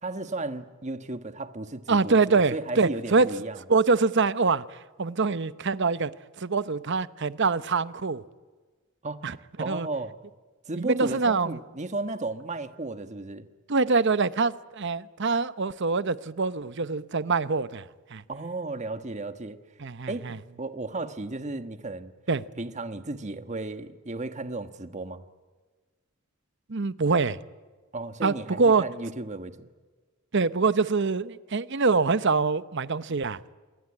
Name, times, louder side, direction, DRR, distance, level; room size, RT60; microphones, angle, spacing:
voice 1, 0.0-3.6 9.0-10.1 10.6-13.5 18.3-19.6 20.1-22.1 22.6-25.2 27.9-29.7, right 2 dB, 35° right, 10 dB, 1.4 m, -34 dB
voice 2, 1.9-3.3 3.7-4.6 5.0-6.1 6.4-8.2 9.2-9.4 9.7-9.9 10.7-11.6 13.7-17.8 18.1-18.2 19.8-20.4 22.3-22.4 26.7-27.4 28.2-28.8 30.3-33.6, right 4 dB, 60° right, 15 dB, 0.9 m, -24 dB
27.0 x 20.5 x 9.7 m, 1.4 s
head